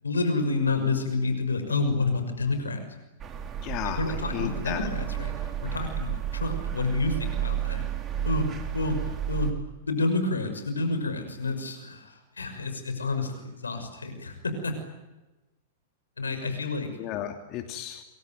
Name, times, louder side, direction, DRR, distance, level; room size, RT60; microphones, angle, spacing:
voice 1, 0.0-2.9 3.8-7.8 8.2-9.0 9.3-9.5 9.8-14.7 16.2-16.9, left 3 dB, 90° left, 8 dB, 6.2 m, -29 dB
sound 1, 3.2-9.5, right 10 dB, 30° right, 4.1 m, -32 dB
voice 2, 3.6-4.9 17.0-18.0, left 11 dB, 40° left, 6 dB, 2.8 m, -34 dB
28.0 x 23.0 x 9.3 m, 1.1 s
hypercardioid pair, 105°, 0 cm